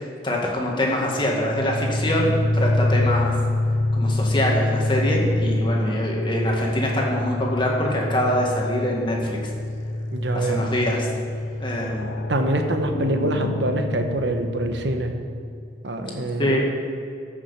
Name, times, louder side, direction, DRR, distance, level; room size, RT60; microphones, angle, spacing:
voice 1, 0.0-3.3 3.9-9.4 10.3-11.1 11.6-12.1 16.4-16.6, left 1 dB, 25° left, -1 dB, 1.9 m, -24 dB
sound 1, 1.1-15.7, left 1 dB, 85° left, 0.7 m, -26 dB
voice 2, 10.1-10.7 12.3-15.1 15.8-16.6, right 1 dB, 70° right, 5 dB, 1.1 m, -25 dB
14.0 x 6.3 x 5.7 m, 2.4 s
head